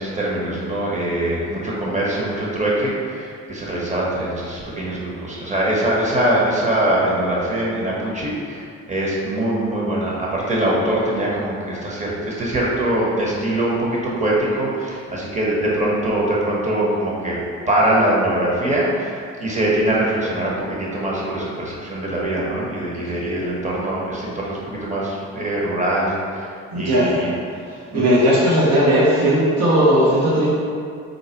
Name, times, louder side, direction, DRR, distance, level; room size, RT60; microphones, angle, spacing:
voice 1, 0.0-17.4 17.7-27.3 27.9-28.2, right 1 dB, 25° right, -5 dB, 1.0 m, -22 dB
voice 2, 26.7-27.3 27.9-30.5, equal, 60° right, -7 dB, 0.9 m, -16 dB
4.0 x 2.2 x 4.4 m, 2.2 s
cardioid pair, 90°, 30 cm